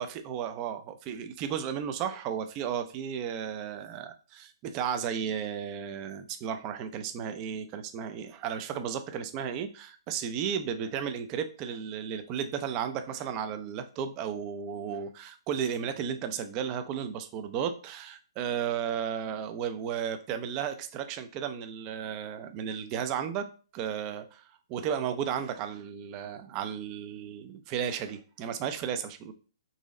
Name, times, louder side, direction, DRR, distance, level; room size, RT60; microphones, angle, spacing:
voice 1, 0.0-23.5 23.7-24.4 24.7-29.3, right 8 dB, 20° right, 8 dB, 0.4 m, -34 dB
4.0 x 3.0 x 3.7 m, 0.37 s
hypercardioid pair, 170°, 3 cm